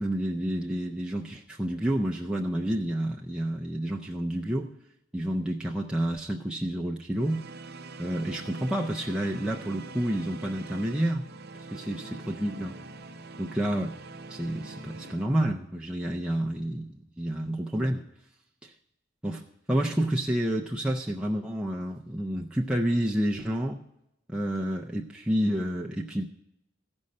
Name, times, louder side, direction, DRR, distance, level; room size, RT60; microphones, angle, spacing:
voice 1, 0.0-4.7 5.1-7.4 8.0-11.2 11.7-12.8 13.4-14.0 14.3-18.0 18.6-18.7 19.2-23.8 24.3-26.3, right 1 dB, 5° right, -1 dB, 0.4 m, -29 dB
sound 1, 7.1-15.2, right 3 dB, 50° right, 0.6 m, -44 dB
14.5 x 5.3 x 6.4 m, 0.85 s
head